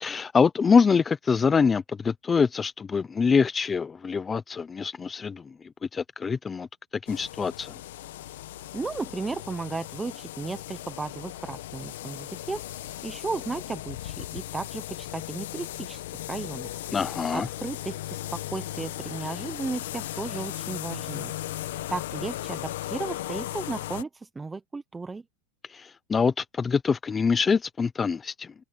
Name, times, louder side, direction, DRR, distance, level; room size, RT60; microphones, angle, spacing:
voice 1, 0.0-6.7 7.1-7.7 16.9-17.5 25.6-28.5, left 5 dB, 20° left, 0.6 m, -25 dB
sound 1, 7.1-24.0, left 14 dB, 80° left, 1.2 m, -37 dB
voice 2, 8.7-12.6 13.0-16.0 16.3-16.7 17.3-21.3 21.9-25.2, right 3 dB, 10° right, 0.9 m, -34 dB
supercardioid pair, 130°, 0 cm